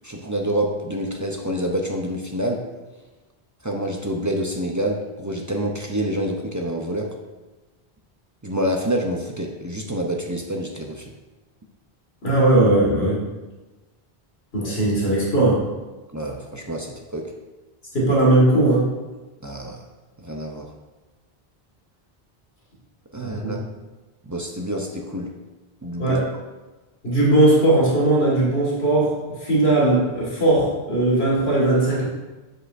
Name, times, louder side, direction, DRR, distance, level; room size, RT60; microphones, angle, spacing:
voice 1, 0.0-2.6 3.6-7.1 8.4-11.1 16.1-17.3 19.4-19.8 20.2-20.7 23.1-23.6 24.2-25.3 25.8-26.2, right 1 dB, 25° right, 1 dB, 0.5 m, -27 dB
voice 2, 12.2-13.2 14.5-15.6 17.9-18.9 23.2-23.6 26.0-26.3 27.0-32.1, right 2 dB, 80° left, -5 dB, 2.1 m, -18 dB
7.5 x 6.3 x 2.6 m, 1.2 s
omnidirectional pair, 1.0 m